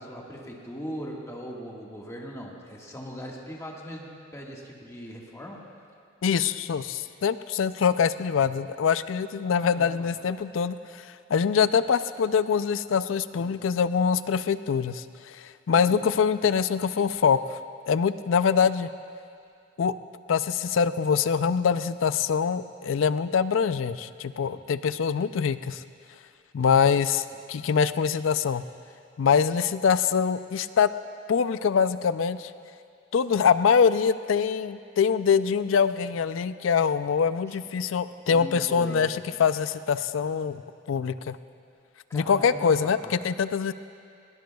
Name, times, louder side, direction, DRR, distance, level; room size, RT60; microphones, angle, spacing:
voice 1, 0.0-5.6 9.6-10.1 13.4-13.5 15.7-16.0 37.8-39.0 42.1-43.2, equal, 15° left, -2 dB, 1.6 m, -40 dB
voice 2, 6.2-17.6 17.9-18.9 19.8-19.9 20.3-25.8 26.5-28.6 29.2-30.9 31.3-32.5 33.1-40.6 40.9-41.4 42.1-43.7, left 6 dB, 85° left, 13 dB, 0.4 m, -24 dB
20.5 x 18.5 x 2.3 m, 2.4 s
head